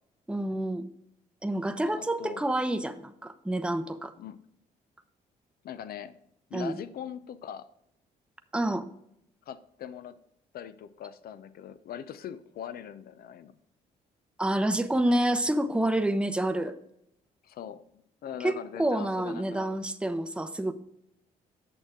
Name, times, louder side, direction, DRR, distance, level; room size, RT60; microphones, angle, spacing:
voice 1, 0.3-0.9 1.4-4.1 6.5-6.7 8.5-8.9 14.4-16.7 18.4-20.7, right 1 dB, 5° right, 9 dB, 0.7 m, -28 dB
voice 2, 1.8-2.4 4.2-4.4 5.6-6.1 6.5-7.7 9.5-10.2 10.5-13.5 15.1-15.2 17.4-19.7, left 9 dB, 65° left, 14 dB, 0.6 m, -41 dB
8.8 x 6.4 x 3.7 m, 0.78 s
supercardioid pair, 60°, 17 cm